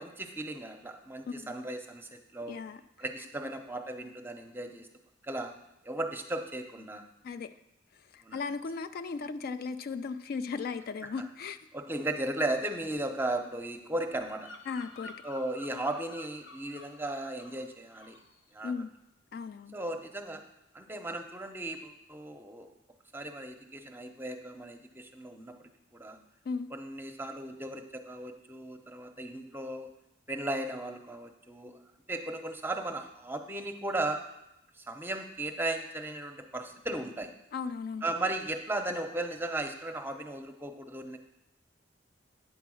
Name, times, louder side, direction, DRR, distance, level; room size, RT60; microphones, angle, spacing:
voice 1, 0.0-2.6 3.0-4.9 5.2-5.5 5.8-7.0 8.2-8.4 11.7-14.5 15.2-18.2 18.5-18.7 19.7-20.4 20.7-22.7 23.1-26.2 26.7-29.9 30.3-31.8 32.1-34.2 34.8-37.3 38.0-41.2, right 2 dB, 10° right, 5 dB, 0.7 m, -36 dB
voice 2, 1.2-1.5 2.5-2.8 7.2-7.5 7.9-11.6 14.7-15.1 18.6-18.9 19.3-19.8 26.5-26.7 37.5-38.0, left 5 dB, 55° left, 11 dB, 0.3 m, -36 dB
Bird vocalization bird call bird song, 14.1-17.7 17.9-18.3, left 3 dB, 90° left, 0.9 m, -50 dB
9.1 x 4.6 x 6.2 m, 0.87 s
head